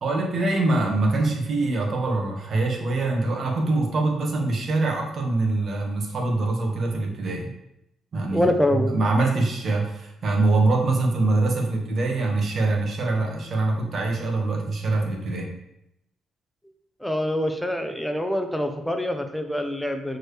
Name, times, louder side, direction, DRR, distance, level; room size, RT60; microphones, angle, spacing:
voice 1, 0.0-7.5 8.1-15.5, right 2 dB, 50° right, 1 dB, 1.5 m, -24 dB
voice 2, 8.3-8.9 17.0-20.2, left 1 dB, 5° left, 5 dB, 0.8 m, -25 dB
6.4 x 4.6 x 3.2 m, 0.82 s
cardioid pair, 90°, 0 cm